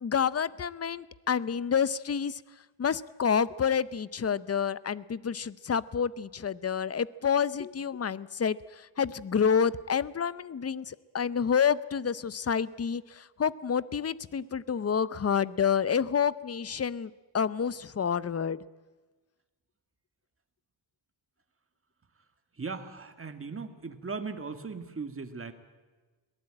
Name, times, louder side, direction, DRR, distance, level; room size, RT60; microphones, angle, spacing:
voice 1, 0.0-2.4 2.8-18.6, left 7 dB, 35° left, 18 dB, 0.6 m, -29 dB
voice 2, 22.5-25.5, right 4 dB, 30° right, 7 dB, 1.8 m, -38 dB
22.0 x 17.5 x 8.8 m, 1.3 s
wide cardioid pair, 125°, 45 cm